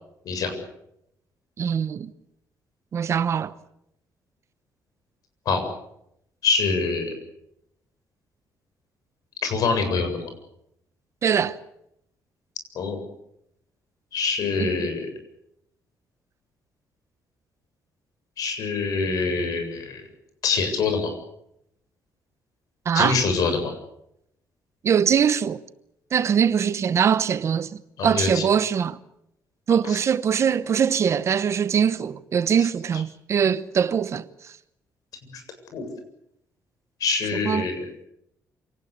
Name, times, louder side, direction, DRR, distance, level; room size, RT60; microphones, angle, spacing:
voice 1, 1.6-2.1 2.9-3.5 11.2-11.6 14.6-14.7 22.8-23.2 24.8-25.6 26.1-27.7 28.0-29.0 29.7-34.3 37.5-37.7, right 7 dB, 45° right, 1.0 m, -22 dB
voice 2, 6.4-7.1 9.4-10.3 12.7-13.0 14.1-15.1 18.4-20.0 20.4-21.1 22.9-23.7 28.0-28.5 29.8-30.0 35.3-35.4 35.7-35.8 37.0-37.9, left 4 dB, 70° left, 7.6 m, -25 dB
27.5 x 19.0 x 8.6 m
cardioid pair, 140°, 7 cm